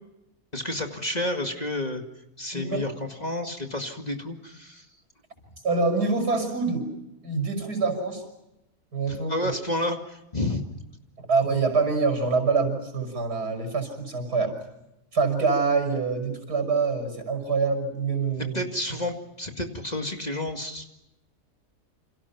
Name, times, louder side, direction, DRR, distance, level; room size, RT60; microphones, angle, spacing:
voice 1, 0.5-2.0 2.4-4.9 9.1-10.6 18.4-20.9, left 1 dB, 25° left, 4 dB, 2.2 m, -30 dB
voice 2, 2.5-2.8 5.6-6.9 7.2-8.2 8.9-9.5 11.2-14.5 15.1-18.6 18.9-19.0, right 4 dB, 80° right, 7 dB, 6.5 m, -25 dB
29.0 x 27.0 x 5.9 m, 0.89 s
omnidirectional pair, 1.7 m